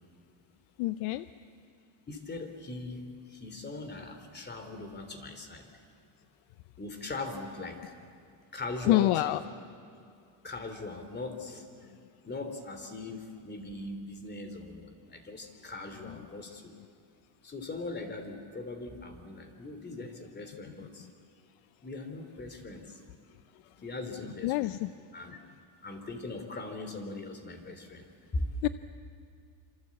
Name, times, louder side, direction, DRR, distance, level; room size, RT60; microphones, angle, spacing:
voice 1, 0.8-1.3 8.9-9.4 16.0-16.2 24.4-24.9 28.6-28.7, left 17 dB, 90° left, 13 dB, 0.7 m, -26 dB
voice 2, 2.1-5.7 6.8-7.9 8.5-9.4 10.4-11.7 12.2-16.7 17.4-21.1 21.8-23.0 23.8-24.8 25.1-25.4 25.8-28.1 28.3-28.7, left 2 dB, 20° left, 6 dB, 3.0 m, -40 dB
27.0 x 26.5 x 8.4 m, 2.3 s
cardioid pair, 140°, 47 cm